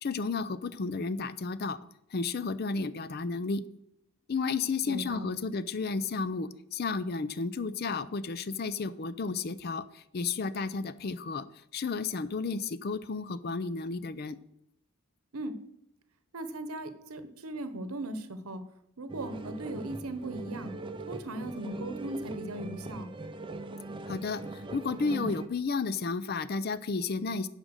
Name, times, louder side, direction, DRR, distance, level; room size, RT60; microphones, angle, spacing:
voice 1, 0.0-1.8 2.1-3.6 4.3-11.5 11.7-14.4 24.1-27.5, left 4 dB, 45° left, 15 dB, 0.4 m, -32 dB
voice 2, 4.8-5.4 15.3-15.5 16.3-18.6 19.0-20.7 21.1-23.1, right 1 dB, 80° right, 11 dB, 0.9 m, -38 dB
sound 1, 19.1-25.5, right 2 dB, 20° right, 0.6 m, -40 dB
9.8 x 5.3 x 6.3 m, 0.81 s
head